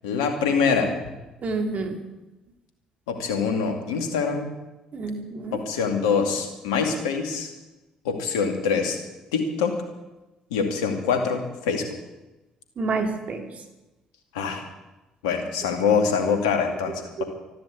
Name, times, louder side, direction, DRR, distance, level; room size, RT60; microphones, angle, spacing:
voice 1, 0.0-0.9 3.1-4.5 5.5-7.5 8.0-9.0 9.3-9.7 10.5-11.9 14.3-14.6 15.2-17.2, left 5 dB, 80° left, 5 dB, 2.3 m, -24 dB
voice 2, 1.4-2.0 4.9-5.6 12.8-13.5 17.2-17.3, right 3 dB, 50° right, 4 dB, 2.9 m, -28 dB
13.5 x 12.0 x 8.4 m, 1.0 s
hypercardioid pair, 45°, 3 cm